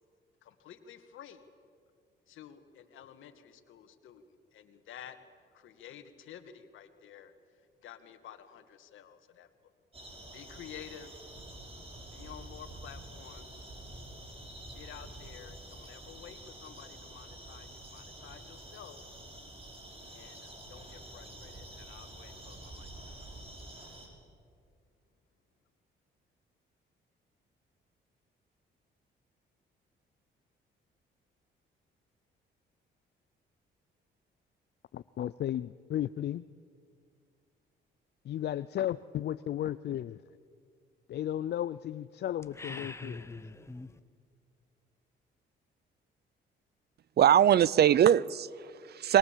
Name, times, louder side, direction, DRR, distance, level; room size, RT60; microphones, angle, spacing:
voice 1, 0.4-1.4 2.3-5.2 5.5-9.5 10.3-11.1 12.1-13.6 14.7-19.1 20.1-23.3, left 9 dB, 80° left, 1.9 m, -51 dB
sound 1, 9.9-24.1, right 1 dB, 30° right, 6.1 m, -48 dB
voice 2, 34.9-36.5 38.2-40.2 41.1-43.4, left 11 dB, 60° left, 0.5 m, -34 dB
sound 2, 42.4-44.0, left 2 dB, 15° left, 1.0 m, -43 dB
voice 3, 47.2-49.2, right 10 dB, 55° right, 0.6 m, -22 dB
27.5 x 22.0 x 7.5 m
cardioid pair, 90°, 20 cm